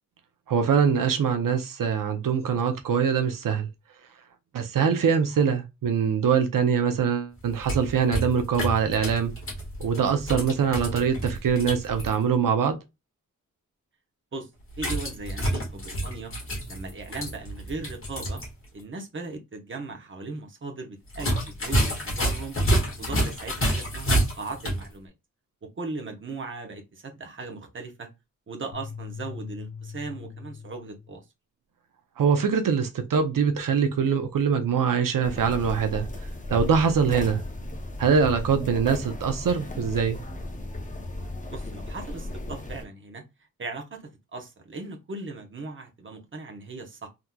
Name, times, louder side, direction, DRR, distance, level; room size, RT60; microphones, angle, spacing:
voice 1, 0.5-3.7 4.5-9.3 9.8-12.8 32.2-36.1 36.5-37.4 38.0-40.2, right 6 dB, 85° right, 0.6 m, -23 dB
sound 1, 7.4-12.1 14.7-18.5 18.8-18.9 21.1-24.9, right 1 dB, 40° left, 1.5 m, -28 dB
voice 2, 14.8-16.3 16.7-18.4 18.7-21.3 21.6-22.6 23.0-25.1 25.6-28.1 28.5-31.2 41.5-43.2 43.6-47.1, right 3 dB, 40° right, 0.8 m, -38 dB
sound 2, 28.7-31.2, left 5 dB, 65° left, 0.5 m, -40 dB
sound 3, 35.2-42.8, left 1 dB, 25° left, 0.6 m, -35 dB
3.6 x 2.8 x 2.2 m
wide cardioid pair, 120°, 32 cm